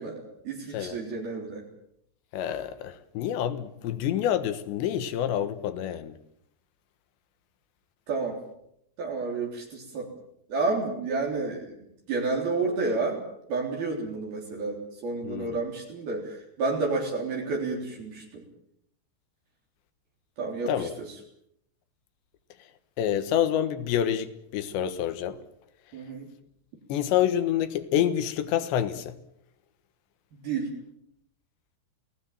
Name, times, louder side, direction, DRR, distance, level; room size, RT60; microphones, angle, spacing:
voice 1, 0.0-1.7 8.1-8.4 9.0-10.1 10.5-11.7 12.1-13.2 13.5-18.4 20.4-21.1 25.9-26.3 30.4-30.7, right 3 dB, 60° right, 5.4 m, -30 dB
voice 2, 2.3-6.2 15.2-15.6 20.7-20.9 23.0-25.4 26.9-29.1, left 10 dB, 90° left, 3.6 m, -27 dB
28.0 x 18.5 x 7.4 m
omnidirectional pair, 4.9 m